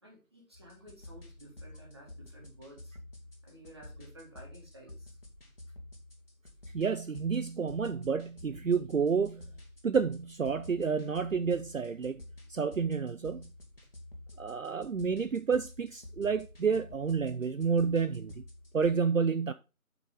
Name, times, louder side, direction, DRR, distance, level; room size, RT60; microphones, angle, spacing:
voice 1, 0.0-3.0 3.4-5.2, right 1 dB, 20° right, 2.0 m, -53 dB
sound 1, 0.5-18.9, left 1 dB, 40° left, 2.0 m, -50 dB
voice 2, 6.7-9.5 9.8-12.2 12.5-13.5 14.4-18.4 18.7-19.5, right 5 dB, 65° right, 0.5 m, -30 dB
6.0 x 5.8 x 5.1 m
figure-of-eight pair, 170°, 43 cm